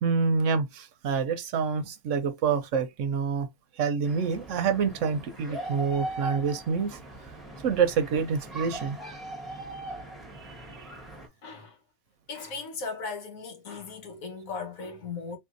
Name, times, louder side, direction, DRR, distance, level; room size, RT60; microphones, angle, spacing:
voice 1, 0.0-3.5 3.8-7.0 7.6-9.0 10.8-10.9, right 6 dB, 70° right, 0.9 m, -27 dB
sound 1, 4.0-11.3, right 1 dB, ahead, 0.9 m, -40 dB
voice 2, 11.4-11.8 12.3-15.4, left 4 dB, 75° left, 1.5 m, -37 dB
4.1 x 2.6 x 2.5 m
omnidirectional pair, 1.4 m